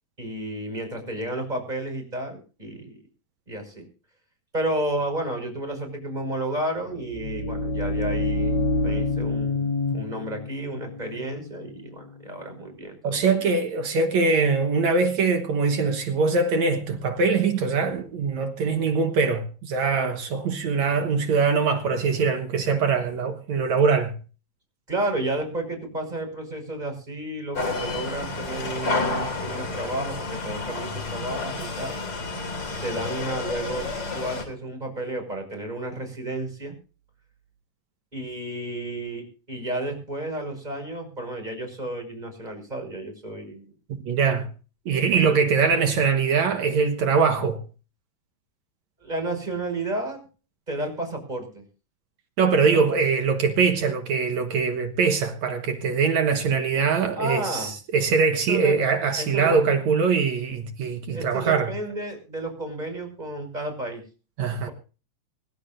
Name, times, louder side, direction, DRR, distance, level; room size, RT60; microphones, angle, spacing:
voice 1, 0.2-3.0 3.5-3.9 4.5-13.5 24.9-32.0 32.8-36.8 38.1-43.7 44.9-45.4 49.0-50.2 50.7-51.6 52.6-52.8 57.2-57.7 58.5-58.8 59.2-59.6 61.1-64.0, right 1 dB, 10° right, 5.6 m, -32 dB
sound 1, 6.8-12.7, left 2 dB, 70° left, 6.0 m, -28 dB
voice 2, 13.0-24.2 43.9-44.5 44.9-47.6 52.4-61.8 64.4-64.7, right 5 dB, 60° right, 2.2 m, -22 dB
sound 2, 27.5-34.4, left 3 dB, 35° left, 3.1 m, -30 dB
25.0 x 12.0 x 2.6 m
omnidirectional pair, 4.2 m